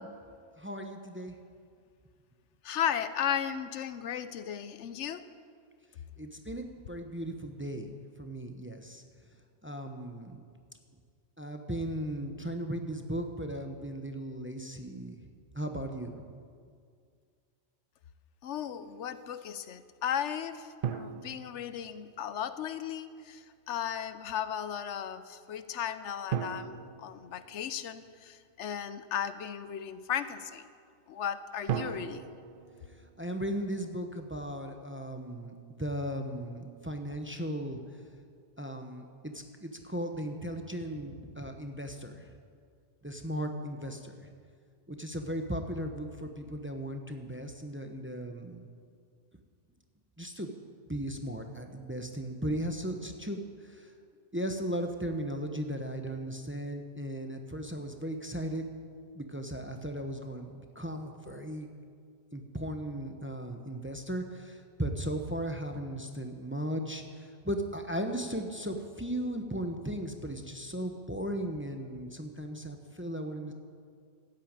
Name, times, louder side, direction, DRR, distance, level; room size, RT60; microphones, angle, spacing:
voice 1, 0.6-1.4 6.2-7.9 8.2-9.0 9.6-10.4 11.4-15.3 15.5-16.1 31.8-32.0 33.2-37.8 38.6-42.3 43.0-44.3 44.9-48.6 50.2-50.5 50.9-53.9 54.3-58.7 59.1-61.7 62.3-73.5, right 1 dB, 10° right, 5 dB, 0.8 m, -37 dB
voice 2, 2.6-5.3 18.4-30.7 31.1-32.3, left 9 dB, 80° left, 13 dB, 1.0 m, -35 dB
sound 1, 20.8-22.4 26.3-28.2 31.7-33.9, right 8 dB, 55° right, 0.7 m, -38 dB
13.0 x 9.1 x 8.8 m, 2.1 s
omnidirectional pair, 1.2 m